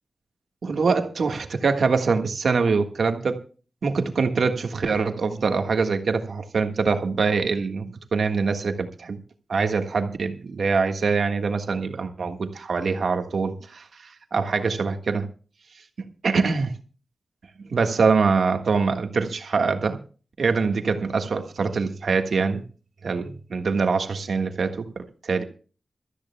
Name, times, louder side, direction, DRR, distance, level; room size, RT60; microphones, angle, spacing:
voice 1, 0.6-3.4 3.8-9.2 9.5-15.3 16.2-16.7 17.6-20.0 20.4-22.6 23.0-24.8 25.2-25.4, right 4 dB, 75° right, 1.5 m, -24 dB
26.5 x 13.5 x 2.2 m
wide cardioid pair, 125°, 0 cm